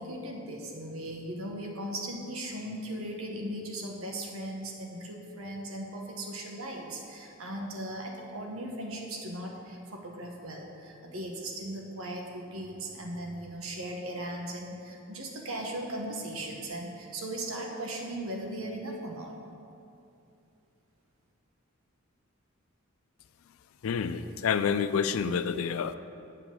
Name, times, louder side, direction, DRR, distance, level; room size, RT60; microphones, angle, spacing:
voice 1, 0.0-19.4, right 1 dB, 90° right, 1 dB, 1.3 m, -38 dB
voice 2, 23.8-26.0, left 6 dB, 75° left, 12 dB, 0.4 m, -28 dB
8.4 x 5.0 x 7.4 m, 2.7 s
head